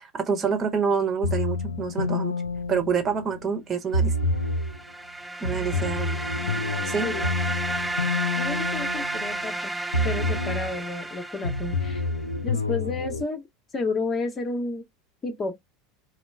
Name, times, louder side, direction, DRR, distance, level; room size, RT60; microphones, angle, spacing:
voice 1, 0.1-2.3 2.7-4.1 5.4-6.2 6.9-7.1, right 6 dB, 30° right, 1.1 m, -26 dB
sound 1, 1.2-3.5 3.9-4.8 5.4-9.6 9.9-10.8 11.4-13.2, left 2 dB, 85° left, 0.4 m, -28 dB
sound 2, 4.4-12.2, right 2 dB, 5° right, 0.3 m, -32 dB
voice 2, 5.5-5.9 7.0-7.3 8.1-9.7 10.0-12.0 12.4-13.5 13.7-14.9 15.2-15.5, left 3 dB, 25° left, 1.1 m, -31 dB
4.2 x 2.1 x 3.4 m
figure-of-eight pair, 75°, 0 cm